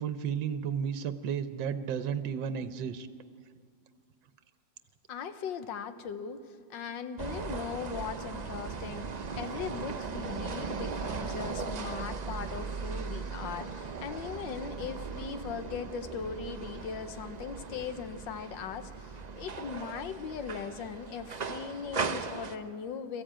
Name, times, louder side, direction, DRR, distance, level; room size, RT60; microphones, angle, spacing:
voice 1, 0.0-3.1, right 7 dB, 85° right, 11 dB, 1.5 m, -33 dB
voice 2, 5.1-23.2, left 6 dB, 85° left, 10 dB, 1.7 m, -39 dB
sound 1, 7.2-22.6, right 5 dB, 65° right, 0.4 m, -38 dB
22.5 x 14.5 x 9.0 m, 2.1 s
omnidirectional pair, 2.0 m